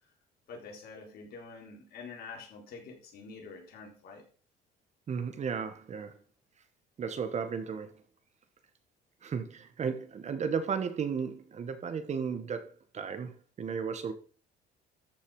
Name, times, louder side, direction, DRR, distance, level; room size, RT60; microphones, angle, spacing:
voice 1, 0.5-4.3, left 4 dB, 65° left, 3.9 m, -46 dB
voice 2, 5.1-6.1 7.0-7.9 9.2-14.1, right 6 dB, 40° right, 1.7 m, -34 dB
13.5 x 5.8 x 5.1 m
cardioid pair, 110°, 17 cm